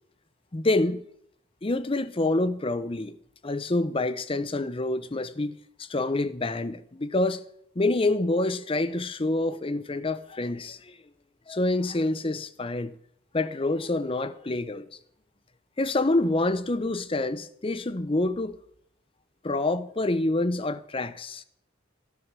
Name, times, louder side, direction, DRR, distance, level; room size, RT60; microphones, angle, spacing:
voice 1, 0.5-1.0 1.6-3.2 3.4-5.5 5.8-7.4 7.8-11.0 11.5-12.9 13.3-15.0 15.8-18.6 19.4-21.4, left 2 dB, 25° left, 0.6 m, -27 dB
14.0 x 11.0 x 6.0 m
head